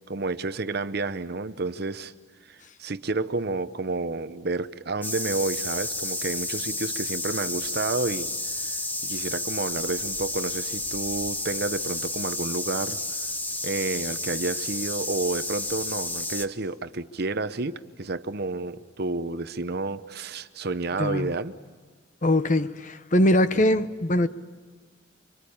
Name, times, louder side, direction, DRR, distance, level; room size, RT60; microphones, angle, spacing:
voice 1, 0.1-2.1 2.4-8.3 8.5-13.0 13.6-21.5, right 3 dB, 50° right, 0.8 m, -30 dB
sound 1, 5.0-16.5, left 2 dB, 10° left, 1.0 m, -31 dB
voice 2, 21.0-21.3 22.2-24.3, left 1 dB, 40° left, 0.8 m, -22 dB
25.5 x 25.0 x 8.6 m
head